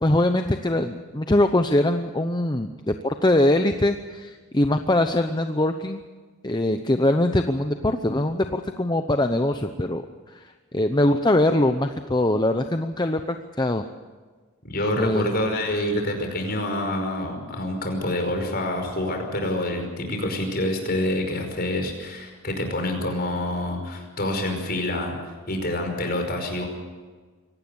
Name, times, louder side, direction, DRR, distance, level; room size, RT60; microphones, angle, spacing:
voice 1, 0.0-6.0 6.4-10.0 10.3-10.4 10.7-13.8 15.0-15.3, left 1 dB, 20° left, 7 dB, 0.8 m, -22 dB
voice 2, 14.6-25.2 25.5-26.7, left 1 dB, 45° left, 4 dB, 5.3 m, -27 dB
24.5 x 18.0 x 7.1 m, 1.4 s
head